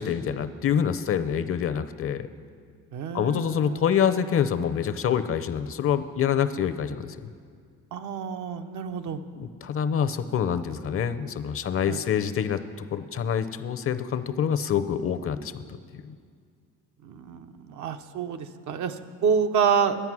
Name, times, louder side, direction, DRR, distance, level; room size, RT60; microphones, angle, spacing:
voice 1, 0.0-2.3 3.1-7.1 9.4-12.6 12.9-15.6 15.9-16.1, left 8 dB, 45° left, 12 dB, 0.6 m, -26 dB
voice 2, 2.9-3.8 7.9-9.2 11.9-12.0 17.0-20.0, right 7 dB, 70° right, 7 dB, 0.7 m, -28 dB
11.0 x 8.9 x 6.1 m, 2.1 s
cardioid pair, 90°, 30 cm